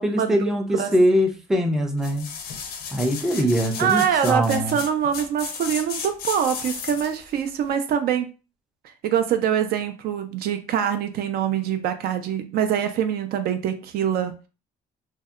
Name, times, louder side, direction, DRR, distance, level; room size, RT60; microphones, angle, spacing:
voice 1, 0.0-2.3 2.9-4.8, equal, ahead, 0.4 m, -22 dB
sound 1, 2.0-7.2 7.7-7.8, left 6 dB, 65° left, 0.5 m, -34 dB
voice 2, 3.8-8.3 9.0-14.3, right 9 dB, 65° right, 0.4 m, -24 dB
2.6 x 2.1 x 2.3 m
cardioid pair, 110°, 17 cm